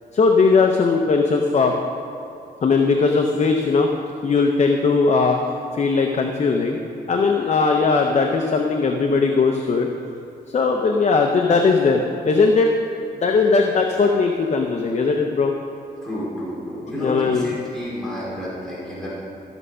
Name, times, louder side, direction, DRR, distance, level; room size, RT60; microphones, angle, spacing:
voice 1, 0.1-1.7 2.6-3.9 4.2-5.4 5.7-6.8 7.1-9.9 10.5-12.7 13.1-15.5 16.9-17.5, left 4 dB, 40° left, 3 dB, 0.6 m, -19 dB
voice 2, 16.0-19.1, equal, 5° left, -8 dB, 2.8 m, -30 dB
13.5 x 6.4 x 5.5 m, 2.8 s
wide cardioid pair, 150°, 17 cm